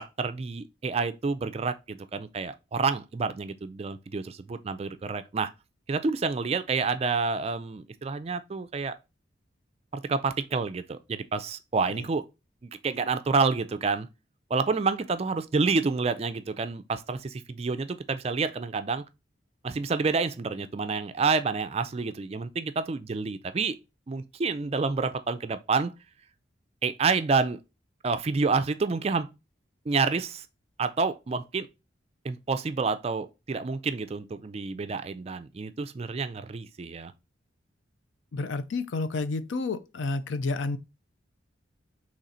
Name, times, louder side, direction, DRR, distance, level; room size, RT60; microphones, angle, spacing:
voice 1, 0.0-5.5 5.9-9.0 9.9-12.2 12.6-14.1 14.5-19.1 19.6-23.8 24.1-25.9 26.8-27.6 28.0-29.3 29.9-30.5 30.8-31.7 32.2-37.1, right 4 dB, 35° right, 0.3 m, -28 dB
voice 2, 38.3-40.8, left 3 dB, 80° left, 0.5 m, -30 dB
3.9 x 3.1 x 4.2 m
head